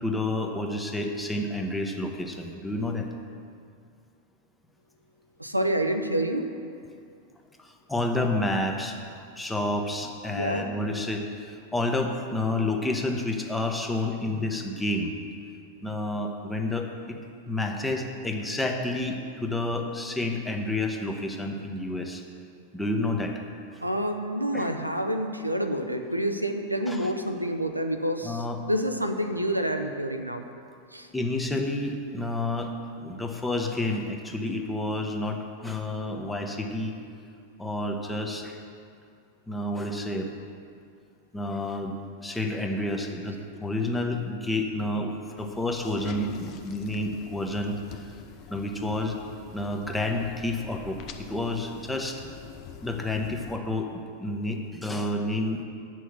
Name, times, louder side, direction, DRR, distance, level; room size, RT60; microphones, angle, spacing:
voice 1, 0.0-3.1 7.9-9.0 9.4-15.1 15.8-17.2 17.5-22.2 22.7-23.3 24.5-24.7 26.9-27.1 28.2-28.6 31.1-32.7 33.0-36.9 37.6-38.6 39.5-40.3 41.3-41.9 42.2-47.7 48.5-49.1 49.5-51.0 51.3-52.2 52.8-55.6, left 2 dB, 10° left, 2 dB, 1.0 m, -29 dB
voice 2, 5.4-6.5 10.3-10.7 23.8-30.4 30.9-31.1, right 1 dB, 85° right, 5 dB, 0.6 m, -28 dB
sound 1, 45.4-53.6, left 7 dB, 35° left, 0.7 m, -45 dB
8.2 x 6.3 x 7.3 m, 2.3 s
figure-of-eight pair, 90°, 0 cm